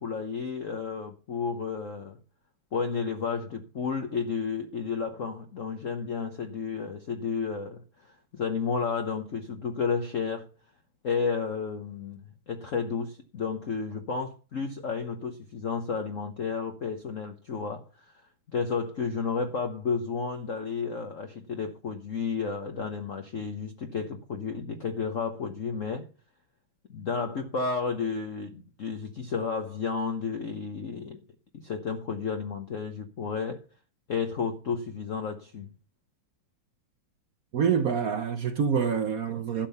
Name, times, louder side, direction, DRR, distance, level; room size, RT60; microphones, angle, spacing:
voice 1, 0.0-2.2 2.7-10.5 11.0-18.2 18.5-26.1 26.9-31.2 31.5-33.6 34.1-35.7, left 5 dB, 50° left, 1.1 m, -32 dB
voice 2, 37.5-39.7, right 7 dB, 60° right, 0.9 m, -26 dB
12.0 x 7.5 x 5.6 m
omnidirectional pair, 2.3 m